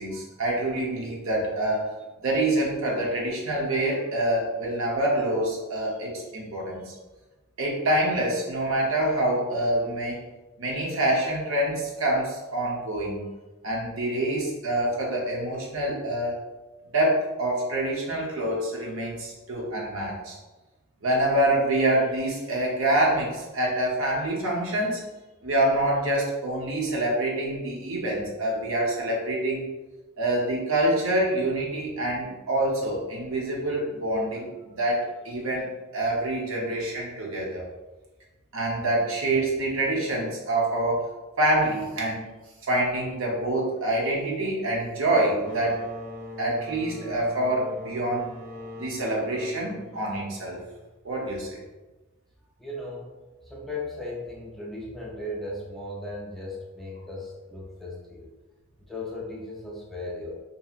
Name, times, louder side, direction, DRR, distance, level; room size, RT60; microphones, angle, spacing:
voice 1, 0.0-1.9 2.2-7.0 7.6-10.2 10.6-13.2 13.6-16.5 16.9-20.4 21.0-25.0 25.4-29.7 30.2-35.7 35.9-37.6 38.5-41.1 41.4-42.3 42.7-45.8 46.4-48.3 48.8-50.6 51.0-51.6, right 1 dB, 70° right, -3 dB, 0.8 m, -26 dB
sound 1, 45.4-50.9, left 1 dB, 25° right, 0.9 m, -41 dB
voice 2, 52.6-53.1 53.4-58.3 58.9-60.4, left 2 dB, ahead, -5 dB, 0.5 m, -36 dB
2.8 x 2.7 x 2.4 m, 1.2 s
head